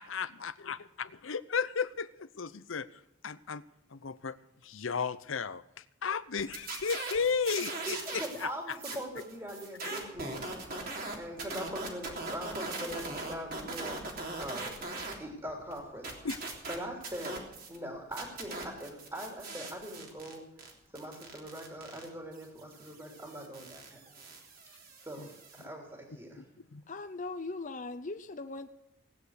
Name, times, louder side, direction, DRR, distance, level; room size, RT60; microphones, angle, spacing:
voice 1, 0.0-2.1 2.4-2.9 3.2-3.6 3.9-4.3 4.7-5.6 6.0-8.2 9.8-9.9 16.2-16.4 26.7-26.8, left 5 dB, 80° left, 16 dB, 0.7 m, -34 dB
sound 1, 6.4-8.5 8.7-15.2 15.5-17.8 18.1-25.6, right 3 dB, 45° right, 3.4 m, -40 dB
voice 2, 7.8-10.3 11.2-14.0 14.4-14.7 15.2-16.4 16.7-20.5 20.9-24.2 25.0-26.4, equal, 15° right, 0 dB, 3.1 m, -42 dB
sound 2, 11.1-11.4 11.7-12.4 12.8-16.3, right 1 dB, 85° right, 3.6 m, -61 dB
voice 3, 26.9-28.7, left 3 dB, 40° left, 8 dB, 0.7 m, -39 dB
18.0 x 9.9 x 6.5 m, 0.85 s
head